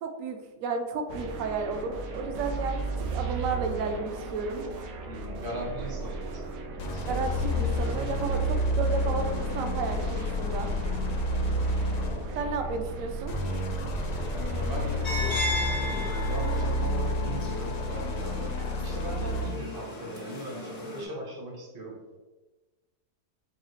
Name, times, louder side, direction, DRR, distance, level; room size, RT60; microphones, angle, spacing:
voice 1, 0.0-2.8 3.1-4.6 7.1-10.7 12.4-13.3, right 4 dB, 70° right, 5 dB, 0.8 m, -32 dB
sound 1, 1.1-16.1, right 3 dB, 85° right, 1.2 m, -36 dB
voice 2, 5.0-7.1 11.2-12.5 14.6-15.0 15.7-22.2, right 1 dB, 35° right, -3 dB, 0.3 m, -40 dB
sound 2, 6.8-12.4 13.3-19.7, left 1 dB, 65° left, 1.0 m, -30 dB
sound 3, 15.0-21.0, left 1 dB, 50° left, 0.4 m, -35 dB
4.7 x 2.4 x 3.1 m, 1.1 s
omnidirectional pair, 1.8 m